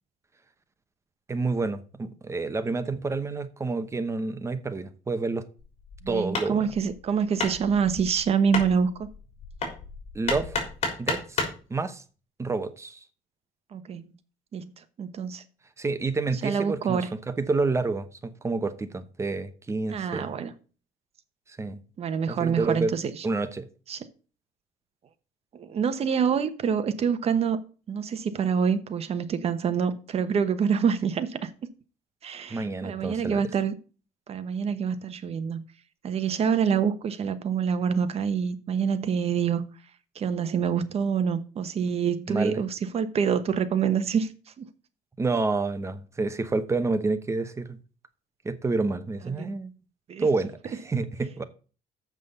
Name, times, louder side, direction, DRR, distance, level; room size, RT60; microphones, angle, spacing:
voice 1, 1.3-5.5 6.1-6.7 10.1-10.6 11.0-11.4 11.7-12.0 12.4-13.0 15.8-20.3 21.5-21.8 22.3-22.9 23.2-23.7 32.5-33.4 42.3-42.6 45.2-47.8 48.4-49.7 50.2-51.4, right 3 dB, 20° right, 0.9 m, -29 dB
Hammer, 5.6-11.6, left 3 dB, 45° left, 3.6 m, -33 dB
voice 2, 6.0-9.1 13.7-14.1 14.5-14.6 15.0-15.4 16.4-17.1 19.9-20.5 22.0-23.2 23.9-24.1 25.5-27.6 27.9-31.5 32.2-33.7 34.3-35.6 36.0-39.6 40.1-44.3 44.6-44.7 49.4-49.5 50.1-50.3, right 7 dB, 45° right, 1.0 m, -26 dB
7.1 x 6.0 x 6.9 m
cardioid pair, 125°, 15 cm